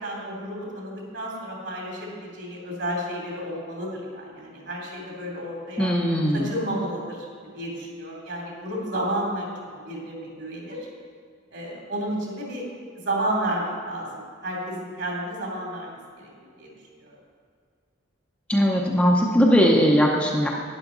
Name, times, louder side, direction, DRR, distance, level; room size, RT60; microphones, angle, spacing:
voice 1, 0.0-5.9 6.3-7.2 7.5-10.9 11.5-12.7 13.0-17.2, right 1 dB, 60° right, -2 dB, 2.9 m, -32 dB
voice 2, 5.8-6.5 18.5-20.5, equal, 5° left, -2 dB, 0.8 m, -19 dB
12.0 x 9.9 x 3.9 m, 2.1 s
head